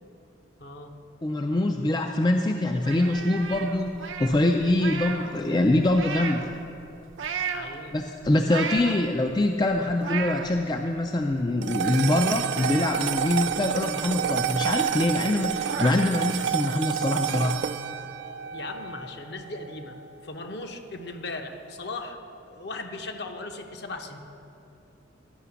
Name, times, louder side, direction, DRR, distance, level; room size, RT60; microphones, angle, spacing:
voice 1, 0.6-0.9 7.5-8.0 18.5-22.2 22.5-24.2, left 2 dB, 55° left, 5 dB, 0.8 m, -38 dB
voice 2, 1.2-6.5 7.9-17.6, left 1 dB, 20° left, 4 dB, 0.3 m, -24 dB
sound 1, 2.8-5.3 5.6-6.6 7.1-7.7 8.2-9.2 9.7-10.5 11.0-11.1 11.3-12.2 12.5-14.1 14.4-14.5 14.9-15.0 15.3-15.9, right 6 dB, 80° right, 0.7 m, -34 dB
sound 2, 11.6-20.1, right 8 dB, 60° right, 0.3 m, -29 dB
11.0 x 5.8 x 7.0 m, 2.7 s
head